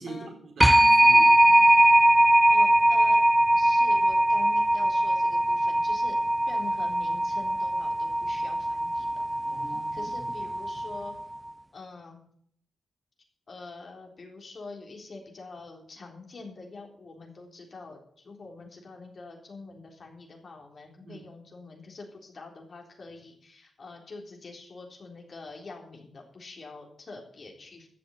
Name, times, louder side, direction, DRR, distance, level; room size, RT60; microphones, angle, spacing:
voice 1, 0.0-1.5 9.4-10.3 21.0-21.2, right 2 dB, 75° right, 1 dB, 4.4 m, -42 dB
sound 1, 0.6-11.2, right 1 dB, 10° right, 0.4 m, -21 dB
voice 2, 2.5-3.2 3.5-6.2 6.5-9.3 9.9-11.1 11.7-12.2 13.5-27.9, left 3 dB, 60° left, 1 dB, 3.7 m, -45 dB
13.5 x 7.5 x 7.1 m, 0.64 s
supercardioid pair, 45°, 0 cm